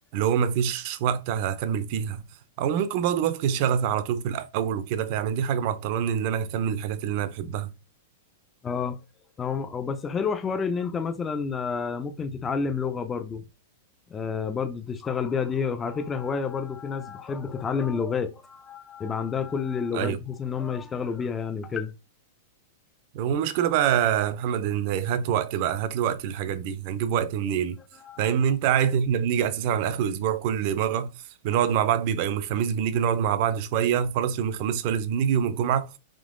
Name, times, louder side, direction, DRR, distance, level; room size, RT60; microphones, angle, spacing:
voice 1, 0.1-2.2 2.6-7.7 19.9-20.2 23.1-27.8 28.2-31.1 31.4-35.9, right 9 dB, 40° right, 0.5 m, -25 dB
voice 2, 8.6-9.0 9.4-13.4 14.1-21.9 27.9-28.3, left 6 dB, 15° left, 0.4 m, -29 dB
3.7 x 2.9 x 3.6 m
supercardioid pair, 165°, 0 cm